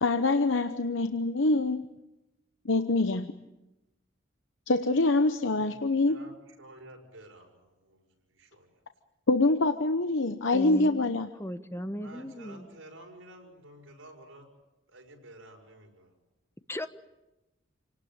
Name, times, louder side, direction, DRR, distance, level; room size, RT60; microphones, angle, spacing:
voice 1, 0.0-1.8 2.6-3.3 4.7-6.2 9.3-11.3, left 2 dB, 70° left, 9 dB, 0.9 m, -25 dB
voice 2, 5.4-5.8 6.1-8.0 8.3-8.8 12.0-14.5 14.9-16.1, right 1 dB, 90° right, 2 dB, 5.9 m, -51 dB
voice 3, 10.5-12.7 16.7-16.9, equal, 15° left, 10 dB, 1.1 m, -37 dB
27.5 x 18.5 x 9.0 m, 0.98 s
head